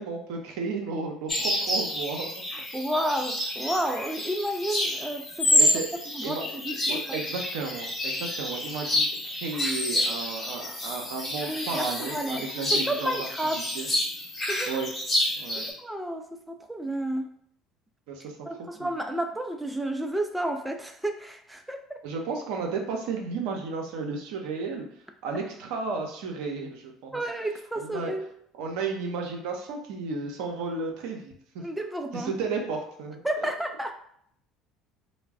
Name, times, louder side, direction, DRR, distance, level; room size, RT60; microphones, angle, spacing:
voice 1, 0.0-2.3 5.6-5.9 6.2-6.6 6.9-13.1 13.7-13.9 14.7-14.9 15.4-15.7 18.1-18.4 18.8-18.9 22.0-24.8 25.2-27.2 27.8-28.1 28.5-31.6 32.1-33.2, right 4 dB, 70° right, 2 dB, 0.5 m, -33 dB
sound 1, 1.3-15.7, left 1 dB, 30° left, 1.0 m, -29 dB
voice 2, 2.5-5.7 6.1-7.1 9.5-9.7 11.4-13.6 14.5-14.7 15.8-17.3 18.5-22.0 27.1-28.3 31.6-32.3 33.2-33.9, right 1 dB, 5° right, 4 dB, 0.3 m, -31 dB
2.2 x 2.0 x 3.4 m, 0.66 s
hypercardioid pair, 65°, 0 cm